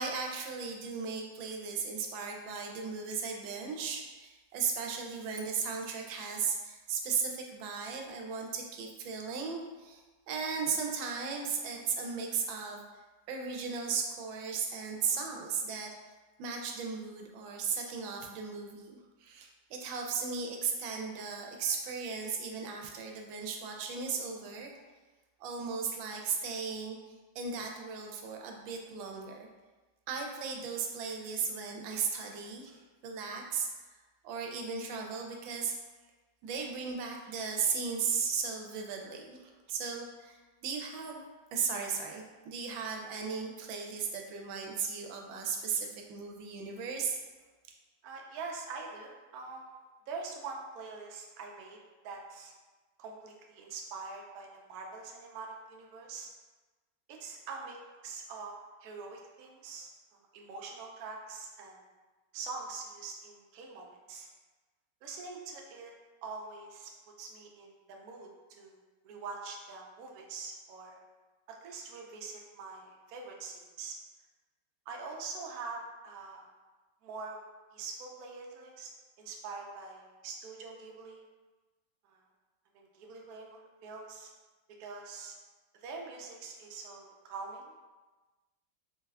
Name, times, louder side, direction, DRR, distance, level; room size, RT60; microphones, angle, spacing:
voice 1, 0.0-12.8 13.3-15.9 16.4-24.7 25.4-27.0 27.3-29.5 30.1-35.8 36.4-47.2, right 5 dB, 85° right, 1 dB, 1.3 m, -36 dB
voice 2, 48.0-49.8 50.1-51.8 52.0-52.5 53.0-56.3 57.1-57.8 58.0-58.5 58.8-61.8 62.3-64.3 65.0-65.9 66.2-66.9 67.2-71.0 71.5-74.0 74.9-76.5 77.0-77.4 77.7-78.9 79.2-81.2 82.0-82.2 82.7-84.3 84.8-85.4 85.7-87.7, right 4 dB, 70° right, 0 dB, 0.9 m, -44 dB
4.0 x 2.2 x 3.4 m, 1.2 s
omnidirectional pair, 2.0 m